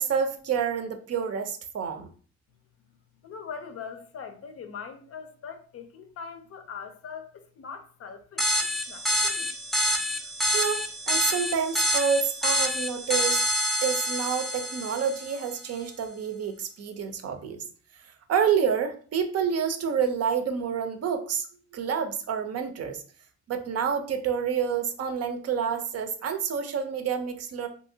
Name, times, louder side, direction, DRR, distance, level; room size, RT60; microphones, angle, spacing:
voice 1, 0.0-2.1 10.5-13.4 13.8-17.6 18.3-21.5 21.7-23.0 23.5-27.7, right 7 dB, 55° right, 0.6 m, -28 dB
voice 2, 3.2-9.5, left 6 dB, 50° left, 0.5 m, -42 dB
sound 1, 8.4-15.5, equal, ahead, 0.4 m, -27 dB
2.7 x 2.7 x 2.7 m
cardioid pair, 90°, 30 cm